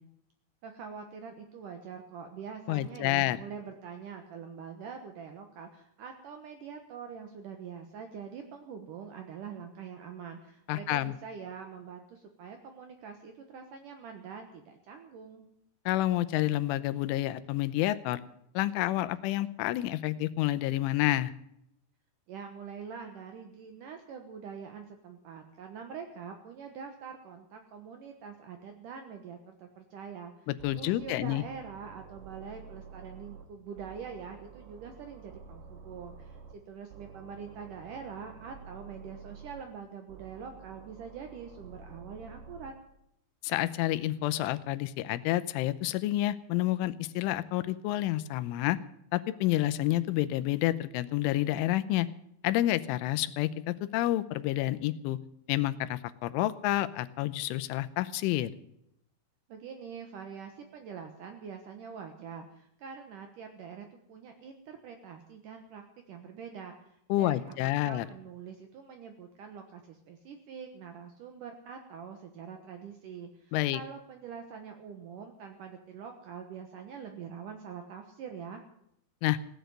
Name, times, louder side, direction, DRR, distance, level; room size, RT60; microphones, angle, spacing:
voice 1, 0.6-15.5 22.3-30.5 30.8-42.7 59.5-65.8 66.1-78.6, right 6 dB, 80° right, 5 dB, 1.9 m, -44 dB
voice 2, 2.7-3.4 10.7-11.1 15.9-18.2 18.5-21.3 30.5-31.4 43.4-48.8 49.1-52.1 52.4-55.2 55.5-58.5 67.1-68.1 73.5-73.8 79.2-79.4, left 15 dB, 80° left, 13 dB, 3.1 m, -29 dB
sound 1, 30.6-33.5 33.8-36.6 36.9-39.6 40.1-42.7, right 6 dB, 60° right, 3.5 m, -50 dB
17.0 x 10.5 x 7.9 m, 0.75 s
omnidirectional pair, 5.7 m